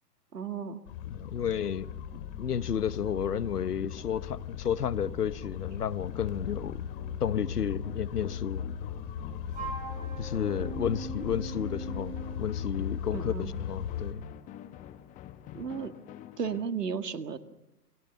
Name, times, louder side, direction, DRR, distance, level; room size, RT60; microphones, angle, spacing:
voice 1, 0.3-0.8 13.1-13.6 15.5-15.9 16.4-17.4, right 6 dB, 75° right, 2.0 m, -34 dB
sound 1, 0.9-14.1, left 8 dB, 35° left, 2.7 m, -38 dB
sound 2, 1.0-16.7, left 11 dB, 15° left, 1.0 m, -48 dB
voice 2, 1.1-2.0 2.4-6.9 7.2-8.6 10.2-14.2, left 8 dB, 70° left, 1.2 m, -32 dB
Wind instrument woodwind instrument, 9.5-12.4, right 4 dB, 15° right, 7.0 m, -40 dB
29.0 x 20.5 x 6.9 m
figure-of-eight pair, 120°, 48 cm